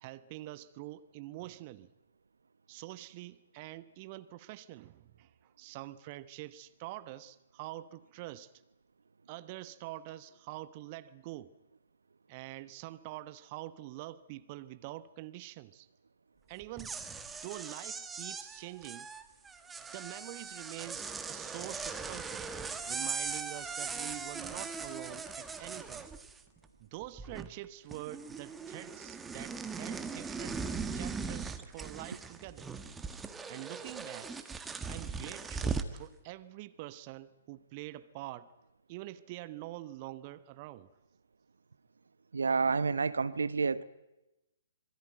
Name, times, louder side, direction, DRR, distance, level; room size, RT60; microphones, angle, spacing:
voice 1, 0.0-1.9 2.7-8.5 9.3-11.6 12.3-15.9 16.5-17.0 17.4-19.1 19.9-22.5 22.9-26.1 26.8-30.6 30.9-32.7 33.5-34.3 34.9-38.5 38.9-40.9, right 16 dB, 30° right, 1.0 m, -45 dB
sound 1, 16.6-26.6 26.9-27.7 27.9-36.0, right 5 dB, 10° right, 1.5 m, -40 dB
voice 2, 42.3-43.8, right 4 dB, 65° right, 1.0 m, -29 dB
25.5 x 22.0 x 9.2 m
figure-of-eight pair, 125°, 0 cm